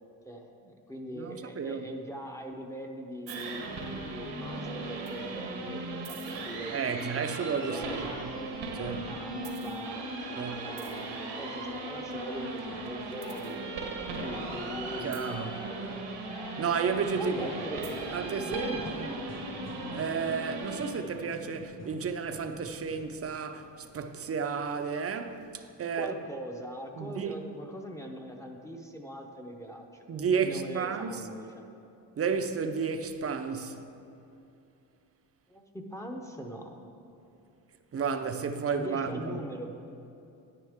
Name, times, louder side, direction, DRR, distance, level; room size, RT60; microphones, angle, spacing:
voice 1, 0.2-3.6 4.0-7.2 7.5-8.3 8.8-13.8 14.2-16.0 17.2-18.1 18.4-18.8 25.9-31.7 35.5-36.7 38.7-39.7, equal, 5° left, 0.8 m, -41 dB
voice 2, 1.2-1.9 6.7-8.3 8.7-9.0 10.4-10.6 15.0-15.5 16.6-17.5 18.1-19.1 19.9-26.1 27.0-27.3 30.1-31.2 32.2-33.8 37.9-39.4, right 6 dB, 35° right, 0.6 m, -32 dB
sound 1, 3.3-20.9, right 2 dB, 85° right, 1.4 m, -38 dB
Singing, 10.5-20.2, left 2 dB, 65° left, 1.4 m, -47 dB
sound 2, 17.1-23.2, left 1 dB, 40° left, 1.6 m, -49 dB
9.8 x 9.7 x 3.6 m
cardioid pair, 100°, 42 cm